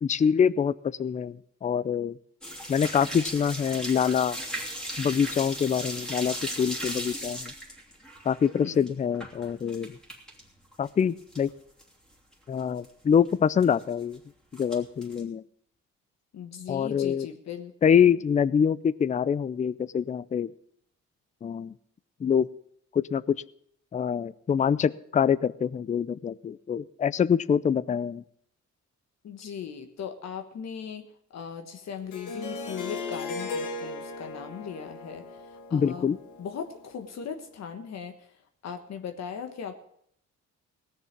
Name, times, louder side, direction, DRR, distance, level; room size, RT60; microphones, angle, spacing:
voice 1, 0.0-2.2 2.7-4.4 5.0-7.5 8.3-10.0 10.8-11.5 12.5-14.2 14.6-15.4 16.7-17.3 17.8-20.5 21.4-21.7 22.2-22.5 22.9-23.4 23.9-28.2 35.7-36.2, left 7 dB, 25° left, 19 dB, 0.4 m, -25 dB
sound 1, 2.4-10.4 10.7-11.5 11.8-11.9 12.3-12.4 12.6-12.8 13.6-14.1 14.5-15.2, equal, ahead, 3.0 m, -37 dB
voice 2, 8.4-8.9 16.3-17.7 29.2-31.1 31.3-35.4 35.7-36.1 36.4-38.3 38.6-39.7, left 7 dB, 60° left, 7 dB, 1.3 m, -38 dB
Harp, 32.1-37.1, left 3 dB, 75° left, 1.8 m, -37 dB
18.0 x 6.8 x 7.3 m, 0.69 s
cardioid pair, 90°, 30 cm